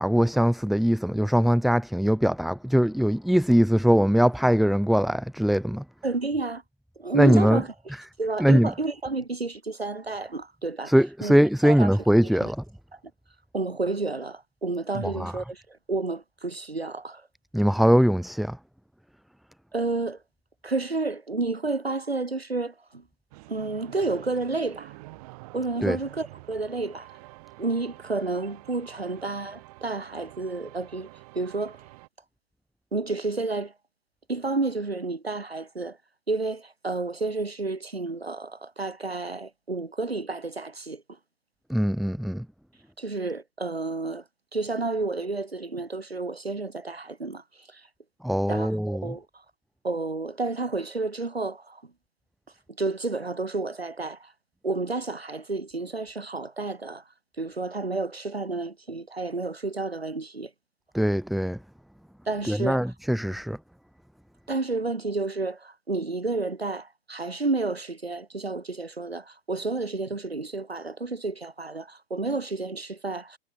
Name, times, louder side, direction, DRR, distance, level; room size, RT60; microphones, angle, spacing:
voice 1, 0.0-5.8 7.1-7.6 8.4-8.7 10.9-12.6 15.0-15.3 17.5-18.6 25.8-26.0 41.7-42.4 48.2-49.1 60.9-61.6 62.5-63.6, equal, ahead, 0.8 m, -21 dB
voice 2, 6.0-6.6 7.0-7.7 8.2-10.9 11.2-11.3 11.6-12.0 12.2-12.5 12.9-13.0 13.5-17.3 19.7-20.2 20.6-23.0 23.5-25.0 25.5-27.2 27.6-31.1 31.3-31.8 32.9-33.7 34.3-36.0 36.3-41.0 43.0-44.2 44.5-47.9 48.5-49.3 49.8-51.9 52.8-54.3 54.6-57.0 57.4-60.5 62.3-62.8 64.5-73.4, right 3 dB, 90° right, 2.1 m, -30 dB
sound 1, 23.3-32.1, right 23 dB, 40° right, 5.2 m, -48 dB
figure-of-eight pair, 115°, 30 cm